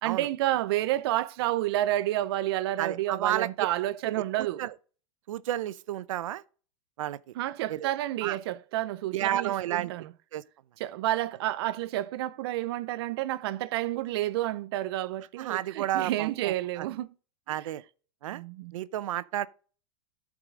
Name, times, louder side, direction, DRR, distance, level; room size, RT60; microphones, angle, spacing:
voice 1, 0.0-4.6 7.4-10.1 10.8-17.1 18.3-18.7, right 14 dB, 50° right, 0.5 m, -30 dB
voice 2, 2.8-3.5 4.1-4.7 5.3-6.4 7.0-7.2 7.7-7.9 8.2-8.4 9.1-9.9 10.3-10.4 15.4-16.9 17.5-17.8 18.2-18.4 18.7-19.5, right 12 dB, 90° right, 0.6 m, -31 dB
13.5 x 4.9 x 3.7 m
supercardioid pair, 170°, 16 cm